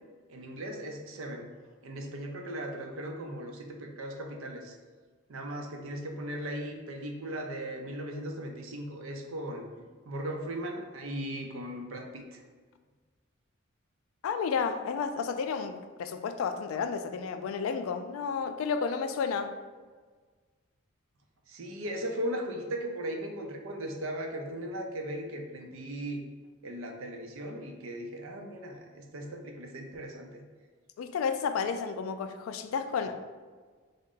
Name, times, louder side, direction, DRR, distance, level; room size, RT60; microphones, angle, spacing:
voice 1, 0.3-1.5 1.8-4.7 5.3-12.4 21.5-26.2 26.6-30.4, right 1 dB, 85° right, 3 dB, 0.5 m, -38 dB
voice 2, 14.2-19.5 31.0-33.2, left 6 dB, 85° left, 9 dB, 0.3 m, -32 dB
3.7 x 2.1 x 3.7 m, 1.5 s
head